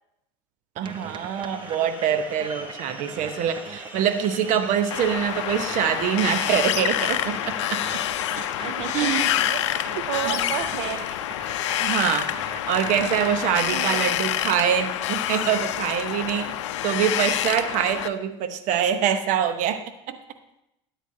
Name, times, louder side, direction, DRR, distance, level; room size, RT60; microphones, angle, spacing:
sound 1, 0.8-16.3, left 1 dB, 10° right, 2.9 m, -46 dB
sound 2, 0.8-13.6, right 7 dB, 30° right, 0.6 m, -42 dB
voice 1, 0.8-7.8 8.9-9.3 10.2-10.4 11.8-16.5 16.8-19.8 20.1-20.2, right 9 dB, 55° right, 9 dB, 1.0 m, -24 dB
Wind, 4.9-18.1, left 12 dB, 75° left, 0.5 m, -27 dB
voice 2, 8.6-9.6 9.9-11.0 13.7-14.1, right 11 dB, 75° right, 7 dB, 0.6 m, -32 dB
13.0 x 9.2 x 2.7 m, 0.84 s
hypercardioid pair, 80°, 15 cm